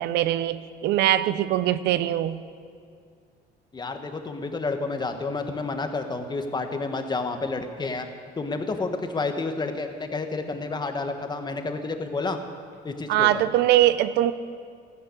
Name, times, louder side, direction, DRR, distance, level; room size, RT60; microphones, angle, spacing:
voice 1, 0.0-2.4 13.1-14.3, right 13 dB, 80° right, 14 dB, 0.7 m, -22 dB
voice 2, 3.7-8.1 8.4-12.4 12.8-13.4, left 3 dB, 25° left, 6 dB, 1.5 m, -30 dB
14.0 x 11.5 x 8.3 m, 2.2 s
cardioid pair, 110°, 17 cm